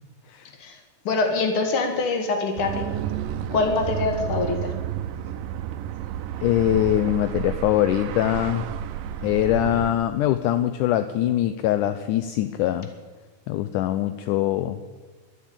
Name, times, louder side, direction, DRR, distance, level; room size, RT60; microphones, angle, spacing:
voice 1, 1.0-2.8 3.5-4.7, left 3 dB, 45° left, 4 dB, 2.2 m, -24 dB
sound 1, 2.6-9.9, right 9 dB, 80° right, 2.2 m, -31 dB
voice 2, 6.4-8.7 9.2-12.9 13.5-14.8, left 12 dB, 80° left, 11 dB, 1.9 m, -23 dB
12.0 x 10.5 x 8.8 m, 1.3 s
omnidirectional pair, 4.1 m